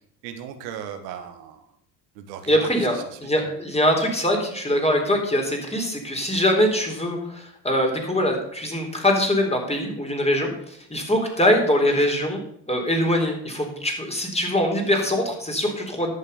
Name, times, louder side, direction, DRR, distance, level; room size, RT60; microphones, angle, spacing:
voice 1, 0.2-1.7 2.1-3.5, right 9 dB, 90° right, 6 dB, 1.5 m, -38 dB
voice 2, 2.5-12.4 12.7-16.1, equal, 15° left, 2 dB, 3.9 m, -23 dB
11.0 x 6.7 x 7.0 m, 0.70 s
supercardioid pair, 70°, 48 cm